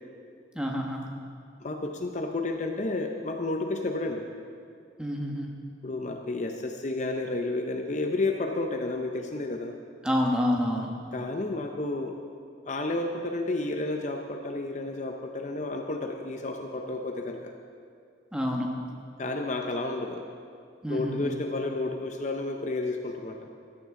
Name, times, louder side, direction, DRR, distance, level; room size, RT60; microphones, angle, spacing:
voice 1, 0.5-1.0 5.0-5.5 10.0-10.9 18.3-18.7 20.8-21.3, equal, 5° right, 0 dB, 1.1 m, -28 dB
voice 2, 1.6-4.3 5.8-9.8 11.1-12.2 12.7-17.5 19.2-20.2 20.9-23.5, left 2 dB, 40° left, 4 dB, 0.6 m, -31 dB
14.5 x 12.0 x 3.7 m, 2.3 s
head